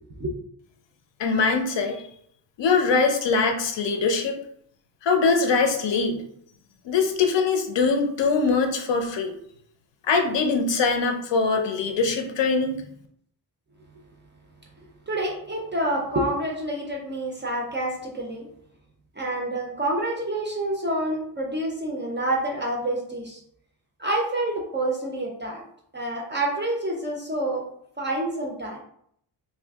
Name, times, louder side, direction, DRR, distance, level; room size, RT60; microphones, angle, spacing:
voice 1, 1.2-2.0 2.6-4.4 5.0-6.2 6.8-9.3 10.1-12.8, left 4 dB, 70° left, 5 dB, 0.6 m, -22 dB
voice 2, 15.1-18.5 19.2-23.4 24.0-25.6 25.9-27.6 28.0-28.8, right 1 dB, 25° right, -2 dB, 0.4 m, -28 dB
2.7 x 2.4 x 3.4 m, 0.68 s
wide cardioid pair, 170°, 45 cm